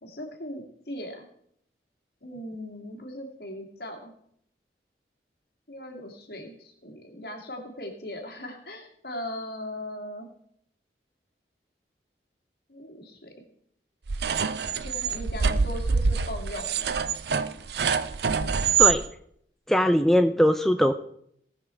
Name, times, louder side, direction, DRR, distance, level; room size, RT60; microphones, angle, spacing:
voice 1, 0.0-1.3 2.2-4.1 5.7-10.3 12.7-13.3 14.8-17.0, left 1 dB, 60° left, 3 dB, 2.2 m, -39 dB
sound 1, 14.1-19.0, right 6 dB, 70° right, 0.6 m, -25 dB
voice 2, 19.7-20.9, equal, ahead, 7 dB, 0.3 m, -21 dB
18.5 x 6.2 x 4.4 m, 0.70 s
head